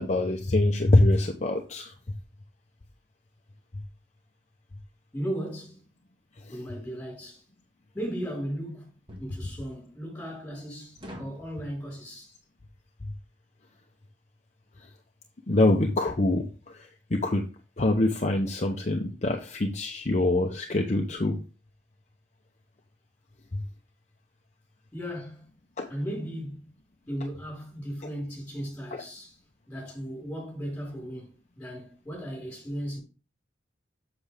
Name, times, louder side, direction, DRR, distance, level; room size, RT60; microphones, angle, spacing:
voice 1, 0.0-1.9 6.4-6.6 13.0-13.1 14.8-14.9 15.5-17.5 17.8-21.4 23.5-23.6 25.8-25.9, left 2 dB, 40° left, 0.7 m, -25 dB
voice 2, 5.1-5.9 6.5-7.4 7.9-8.9 9.2-12.3 24.9-25.4 25.9-26.7 27.1-29.4 29.7-33.0, equal, 10° left, 4.7 m, -36 dB
sound 1, 6.9-7.2 9.1-9.4 11.0-11.4, equal, 25° right, 1.7 m, -43 dB
7.8 x 6.0 x 3.4 m
head